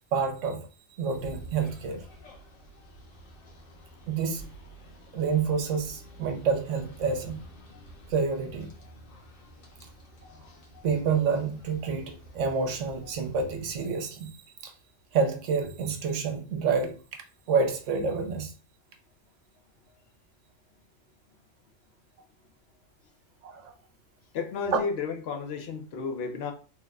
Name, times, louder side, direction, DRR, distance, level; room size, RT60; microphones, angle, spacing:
voice 1, 0.1-2.0 4.1-4.5 5.1-7.4 8.1-8.7 10.8-14.7 15.1-17.0 17.5-18.5 23.4-23.7 24.7-24.8, right 5 dB, 70° right, 1.0 m, -28 dB
sound 1, 1.1-13.9, right 1 dB, 90° left, 1.3 m, -49 dB
voice 2, 24.3-26.5, left 5 dB, 60° left, 0.8 m, -32 dB
3.2 x 2.1 x 3.5 m
omnidirectional pair, 1.3 m